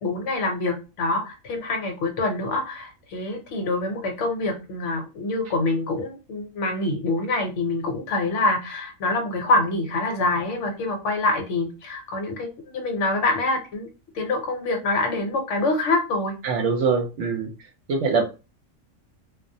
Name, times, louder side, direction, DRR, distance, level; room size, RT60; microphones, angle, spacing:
voice 1, 0.0-13.9 14.1-16.3, left 2 dB, 65° left, 3 dB, 1.0 m, -25 dB
voice 2, 16.4-17.5 17.9-18.2, right 5 dB, 65° right, 3 dB, 0.9 m, -23 dB
2.3 x 2.0 x 2.6 m, 0.30 s
omnidirectional pair, 1.4 m